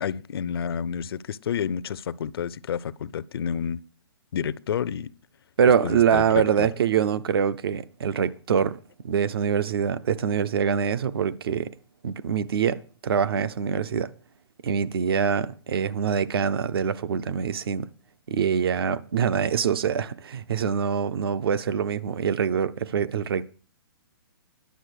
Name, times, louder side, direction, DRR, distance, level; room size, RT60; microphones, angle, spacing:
voice 1, 0.0-3.8 4.3-5.1 5.8-6.7, left 8 dB, 70° left, 0.5 m, -30 dB
voice 2, 5.6-8.8 9.0-11.7 12.0-14.1 14.6-17.9 18.3-23.5, right 7 dB, 70° right, 0.6 m, -24 dB
10.5 x 6.7 x 6.4 m
hypercardioid pair, 150°, 13 cm